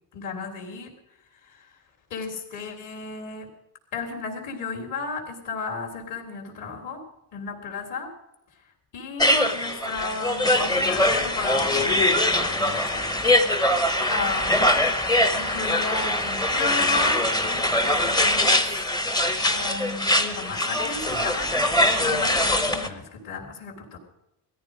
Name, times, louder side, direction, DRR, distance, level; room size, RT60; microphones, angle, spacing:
voice 1, 0.1-0.9 1.4-1.7 2.1-3.5 3.9-7.0 7.3-8.1 8.9-13.1 14.1-15.1 15.3-18.7 19.4-21.5 21.9-24.0, left 4 dB, 50° left, 1 dB, 3.7 m, -34 dB
sound 1, 9.2-22.9, left 1 dB, 10° left, 0.9 m, -22 dB
18.5 x 14.0 x 5.0 m, 0.89 s
cardioid pair, 170°, 41 cm